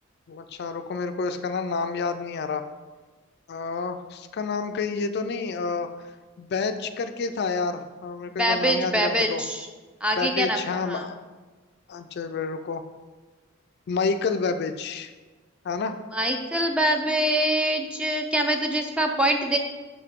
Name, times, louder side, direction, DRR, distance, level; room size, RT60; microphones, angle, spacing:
voice 1, 0.3-2.6 3.5-5.9 6.4-9.4 10.2-11.2 11.9-12.8 13.9-15.1 15.6-15.9, left 4 dB, 55° left, 8 dB, 0.4 m, -29 dB
voice 2, 8.4-9.7 10.0-11.1 16.1-19.6, right 1 dB, 5° right, 4 dB, 0.5 m, -24 dB
6.6 x 5.3 x 3.6 m, 1.3 s
head